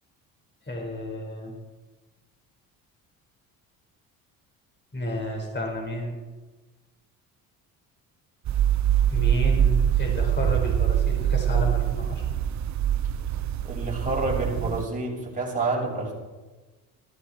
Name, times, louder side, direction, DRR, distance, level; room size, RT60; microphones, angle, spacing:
voice 1, 0.7-1.5 4.9-6.2 9.1-12.2, equal, 25° left, 1 dB, 4.9 m, -31 dB
sound 1, 8.4-14.8, right 10 dB, 45° right, 0.6 m, -24 dB
voice 2, 13.6-16.1, right 2 dB, 20° right, -3 dB, 6.1 m, -28 dB
14.0 x 14.0 x 4.5 m, 1.2 s
supercardioid pair, 70°, 41 cm